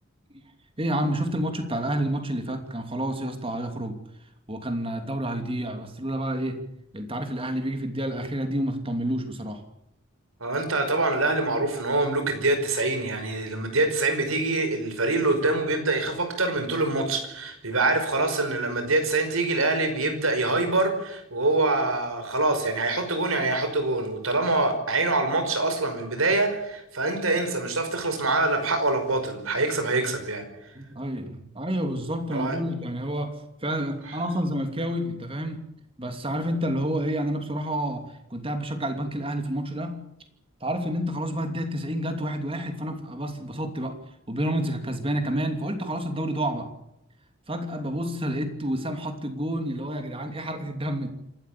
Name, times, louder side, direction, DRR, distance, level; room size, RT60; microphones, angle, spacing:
voice 1, 0.8-4.0 4.5-6.6 6.9-9.6 30.7-35.7 36.0-40.0 40.6-44.0 44.3-46.7 47.5-51.1, right 1 dB, 25° right, 6 dB, 2.8 m, -29 dB
voice 2, 10.4-30.5 32.3-32.6, right 2 dB, 90° right, 7 dB, 5.5 m, -25 dB
27.0 x 13.0 x 8.5 m, 0.83 s
head